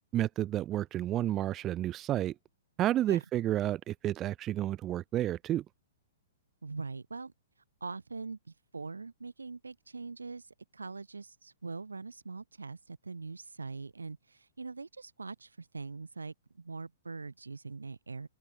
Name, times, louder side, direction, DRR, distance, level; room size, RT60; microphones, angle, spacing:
voice 1, 0.1-2.3 2.8-5.6, right 13 dB, 25° right, 0.6 m, -31 dB
voice 2, 6.6-7.3 7.8-10.5 10.7-18.3, right 4 dB, 75° right, 2.8 m, -42 dB
open air
figure-of-eight pair, 110°, 0 cm